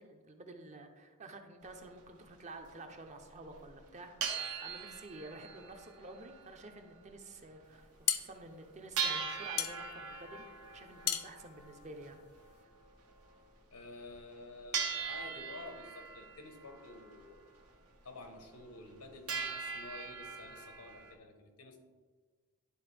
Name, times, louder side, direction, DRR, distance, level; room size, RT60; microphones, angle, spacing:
voice 1, 0.0-10.4 10.7-12.2, right 2 dB, 30° right, 5 dB, 0.6 m, -50 dB
sound 1, 1.6-1.8 2.3-2.4 2.6-2.8 3.5-3.6 3.8-7.0 7.2-7.3 7.7-7.8 8.2-8.3 9.0-13.5 14.2-14.3 14.7-17.7 18.1-18.2 18.5-19.0 19.3-21.1, right 6 dB, 75° right, 1.0 m, -41 dB
sound 2, 7.7-12.6, left 11 dB, 70° left, 0.5 m, -38 dB
voice 2, 13.7-17.5 18.0-21.8, left 2 dB, 90° left, 5 dB, 1.1 m, -50 dB
11.0 x 3.9 x 3.4 m, 1.4 s
head